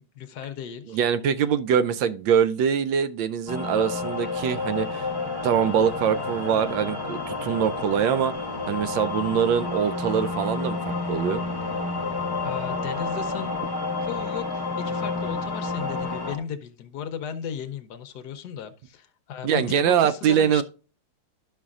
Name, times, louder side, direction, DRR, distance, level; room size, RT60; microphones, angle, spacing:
voice 1, 0.0-1.0 9.1-9.4 12.4-13.6 14.0-20.6, left 8 dB, 70° left, 1.0 m, -36 dB
voice 2, 0.9-5.1 5.4-8.3 8.7-11.4 19.4-20.6, right 8 dB, 75° right, 1.2 m, -23 dB
sound 1, 3.5-16.4, left 3 dB, 15° left, 0.8 m, -30 dB
12.5 x 5.5 x 2.4 m
omnidirectional pair, 2.3 m